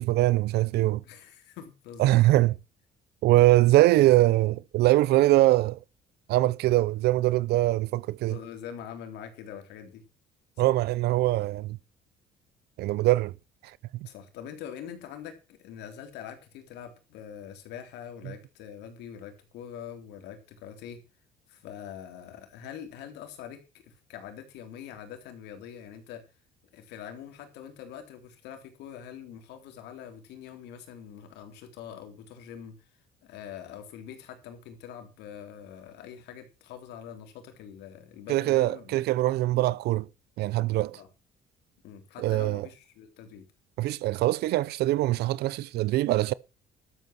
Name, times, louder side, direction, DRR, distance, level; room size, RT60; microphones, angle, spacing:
voice 1, 0.0-1.0 2.0-2.5 3.2-5.8 6.3-8.4 10.6-11.8 12.8-13.3 38.3-40.1 40.4-41.0 42.2-42.6 43.8-46.3, right 16 dB, 75° right, 0.5 m, -22 dB
voice 2, 1.0-2.2 8.2-10.0 10.6-10.7 14.0-21.0 21.5-26.2 26.7-32.8 33.2-39.0 40.9-41.1 41.8-43.5, left 9 dB, 85° left, 3.5 m, -44 dB
12.5 x 8.0 x 6.0 m
cardioid pair, 110°, 17 cm